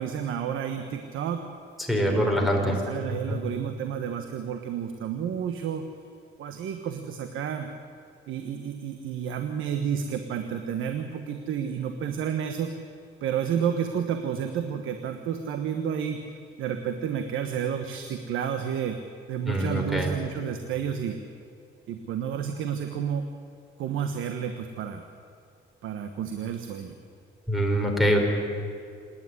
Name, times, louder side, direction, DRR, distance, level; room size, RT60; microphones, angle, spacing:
voice 1, 0.0-1.4 2.0-5.8 6.4-7.7 8.3-12.7 13.2-16.2 16.6-19.0 19.3-21.2 21.9-23.3 23.8-25.0 25.8-26.9, right 8 dB, 85° right, 7 dB, 1.3 m, -31 dB
voice 2, 1.8-2.8 3.1-3.4 19.5-20.1 27.5-28.2, equal, ahead, 2 dB, 4.5 m, -24 dB
26.5 x 10.5 x 9.7 m, 2.3 s
cardioid pair, 90°, 20 cm